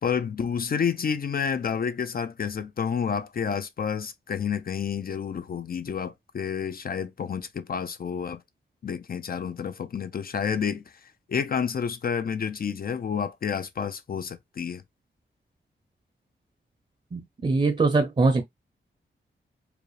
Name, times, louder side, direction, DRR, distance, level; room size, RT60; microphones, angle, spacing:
voice 1, 0.0-8.4 8.8-10.8 11.3-14.8, left 7 dB, 50° left, 0.5 m, -29 dB
voice 2, 17.1-18.4, right 3 dB, 30° right, 0.7 m, -22 dB
4.9 x 2.1 x 3.2 m
wide cardioid pair, 90°, 20 cm